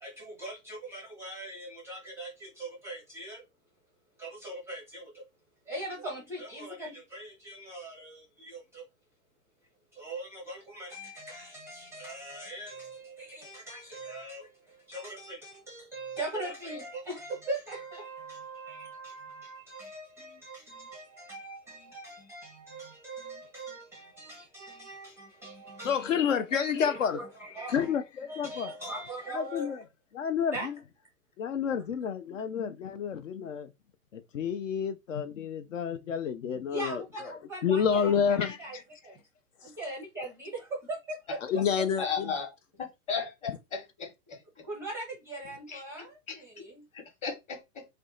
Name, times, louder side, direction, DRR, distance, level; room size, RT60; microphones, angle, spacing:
voice 1, 0.0-3.4 4.2-5.3 5.6-8.9 9.9-26.1 26.8-28.0 28.3-29.8 30.5-30.7 36.7-38.8 39.0-39.2 39.6-42.1 44.6-46.8, right 2 dB, 5° right, 0.5 m, -41 dB
voice 2, 25.8-27.2 27.7-28.7 29.3-29.8 30.1-30.5 31.4-33.7 34.1-37.0 37.6-38.6 41.4-42.3, left 7 dB, 60° left, 0.5 m, -29 dB
voice 3, 42.0-42.5 43.1-44.4 45.7-45.8 46.3-46.4 46.9-47.8, left 6 dB, 15° left, 0.9 m, -35 dB
2.6 x 2.1 x 3.8 m
figure-of-eight pair, 115°, 45 cm